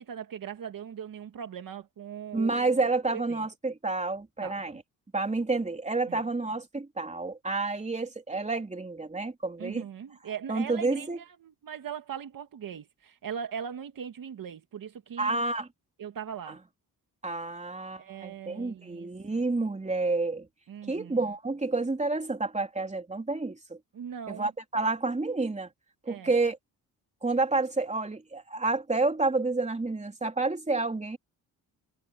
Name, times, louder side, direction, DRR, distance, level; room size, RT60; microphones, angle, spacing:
voice 1, 0.0-2.7 3.1-3.5 4.4-4.8 6.1-6.3 9.6-15.4 16.0-16.6 18.0-19.4 20.7-21.2 23.9-24.5 26.1-26.3, right 8 dB, 65° right, 2.0 m, -40 dB
voice 2, 2.3-4.8 5.1-9.8 10.5-11.2 15.2-15.7 16.5-16.6 17.2-20.5 20.9-23.8 24.3-25.7 26.0-26.6 27.2-31.2, right 3 dB, 20° right, 3.3 m, -29 dB
cardioid pair, 85°, 36 cm